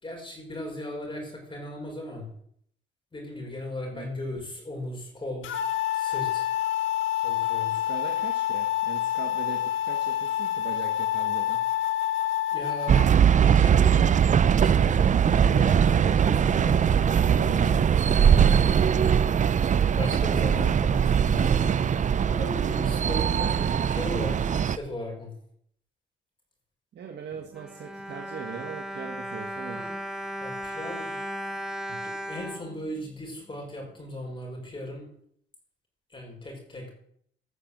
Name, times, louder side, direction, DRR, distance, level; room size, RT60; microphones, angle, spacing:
voice 1, 0.0-2.3 3.1-5.5 5.9-6.5 7.2-7.7 12.5-13.1 13.4-14.2 14.6-17.9 18.2-18.6 20.0-21.7 22.2-25.3 30.4-31.2 32.0-35.1 36.1-36.9, left 1 dB, 25° left, 0 dB, 5.7 m, -37 dB
sound 1, 5.4-13.1, left 12 dB, 80° left, 1.7 m, -27 dB
voice 2, 7.7-11.6 26.9-29.9 31.9-32.0, right 7 dB, 60° right, 3 dB, 1.5 m, -40 dB
sound 2, 12.9-24.8, right 8 dB, 40° right, 0.5 m, -21 dB
Bowed string instrument, 27.3-33.6 34.2-34.3 34.6-34.8, equal, 5° right, 2.6 m, -36 dB
14.5 x 6.9 x 7.6 m, 0.66 s
cardioid pair, 90°, 20 cm